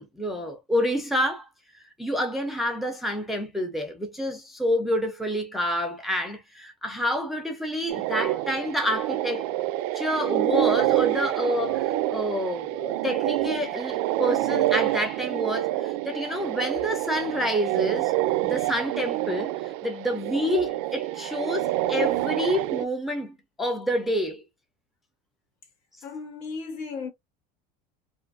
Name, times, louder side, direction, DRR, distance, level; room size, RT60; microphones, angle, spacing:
voice 1, 0.0-1.5 2.0-9.5 9.9-18.1 18.4-24.4, equal, ahead, 0.4 m, -28 dB
sound 1, 7.9-22.8, right 15 dB, 65° right, 0.4 m, -27 dB
voice 2, 26.0-27.1, left 4 dB, 80° left, 1.2 m, -35 dB
2.6 x 2.4 x 2.4 m
cardioid pair, 165°, 20 cm